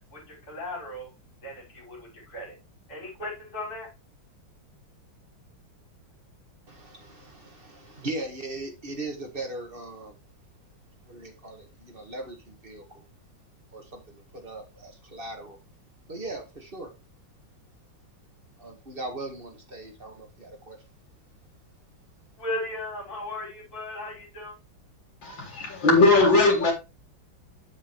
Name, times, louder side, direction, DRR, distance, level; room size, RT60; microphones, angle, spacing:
voice 1, 0.1-1.1 1.4-2.6 2.9-3.9 22.4-24.5, left 1 dB, 50° left, -3 dB, 6.0 m, -36 dB
voice 2, 6.7-10.1 11.1-13.0 13.7-15.6 16.1-16.9 18.6-20.8, right 2 dB, 30° right, 3 dB, 1.7 m, -39 dB
voice 3, 25.2-26.7, left 3 dB, 70° left, -1 dB, 3.2 m, -19 dB
7.5 x 7.4 x 3.3 m, 0.27 s
omnidirectional pair, 2.1 m